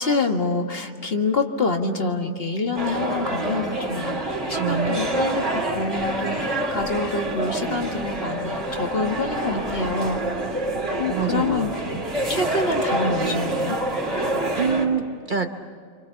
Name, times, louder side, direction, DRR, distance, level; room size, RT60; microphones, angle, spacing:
voice 1, 0.0-10.2 10.9-12.0 12.3-13.8, left 3 dB, 45° left, 4 dB, 1.9 m, -26 dB
sound 1, 2.8-14.9, right 1 dB, 65° right, 3.3 m, -27 dB
voice 2, 4.3-5.1 11.1-12.0 14.3-15.5, right 6 dB, 40° right, 6 dB, 1.0 m, -27 dB
27.5 x 26.5 x 7.1 m, 2.1 s
omnidirectional pair, 1.4 m